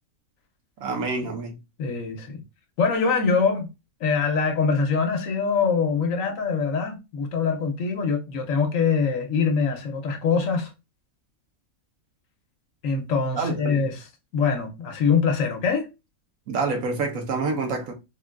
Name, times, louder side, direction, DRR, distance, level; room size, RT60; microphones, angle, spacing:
voice 1, 0.8-1.6 13.4-13.8 16.5-17.9, right 3 dB, 70° right, 1.1 m, -27 dB
voice 2, 1.8-2.4 2.8-3.7 4.0-10.7 12.8-14.1 14.3-15.9, left 5 dB, 70° left, 1.1 m, -23 dB
3.7 x 2.3 x 2.2 m
omnidirectional pair, 1.5 m